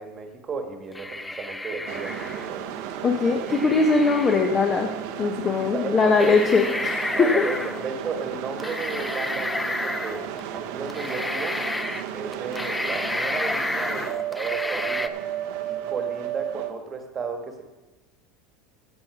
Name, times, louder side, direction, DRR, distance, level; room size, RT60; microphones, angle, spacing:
voice 1, 0.0-2.6 5.4-6.4 7.1-10.2 10.5-11.6 12.1-15.2 15.7-17.6, right 5 dB, 25° right, 4 dB, 1.5 m, -34 dB
sound 1, 0.9-2.6 3.5-4.4 5.6-5.7 6.2-7.8 8.6-10.4 10.9-12.0 12.3-15.1, left 2 dB, 5° left, 0.4 m, -30 dB
sound 2, 1.9-16.7, right 10 dB, 65° right, 1.0 m, -34 dB
voice 2, 3.0-4.9 5.2-7.5, left 4 dB, 25° left, 3 dB, 0.9 m, -21 dB
16.0 x 5.8 x 6.0 m, 1.1 s
supercardioid pair, 155°, 0 cm